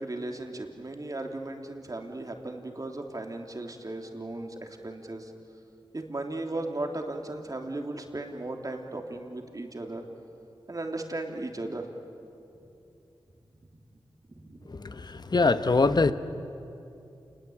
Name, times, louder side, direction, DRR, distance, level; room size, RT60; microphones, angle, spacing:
voice 1, 0.0-5.3 5.9-10.0 10.7-11.9 14.3-14.7, right 2 dB, 40° right, 3 dB, 3.1 m, -36 dB
voice 2, 14.7-16.1, left 3 dB, 45° left, 11 dB, 1.1 m, -23 dB
28.5 x 21.0 x 8.7 m, 2.8 s
cardioid pair, 50°, 10 cm